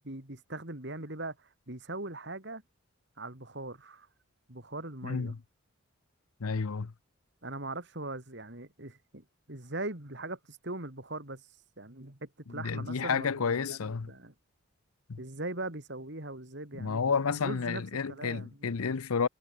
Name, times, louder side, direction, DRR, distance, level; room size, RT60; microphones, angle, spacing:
voice 1, 0.0-2.6 3.2-4.1 4.5-5.3 7.4-11.5 11.8-14.3 15.2-17.8 18.1-18.8, right 2 dB, 50° right, 3.3 m, -41 dB
voice 2, 5.0-5.4 6.4-6.9 12.5-14.1 15.1-15.2 16.7-19.3, left 5 dB, 80° left, 0.7 m, -31 dB
head